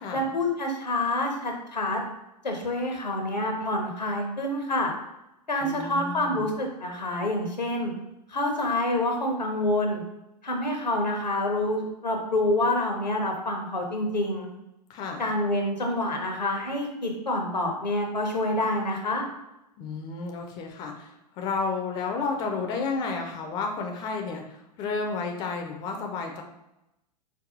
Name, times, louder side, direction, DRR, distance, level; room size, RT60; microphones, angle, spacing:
voice 1, 0.1-2.0 2.4-4.9 5.5-7.9 8.3-10.0 10.4-14.5 15.2-19.2, left 1 dB, 85° left, 3 dB, 0.7 m, -27 dB
voice 2, 5.6-6.5 14.9-15.2 19.8-21.1 21.4-24.4 24.8-26.4, left 4 dB, 20° left, 3 dB, 0.4 m, -31 dB
4.5 x 2.3 x 2.5 m, 0.90 s
figure-of-eight pair, 100°, 21 cm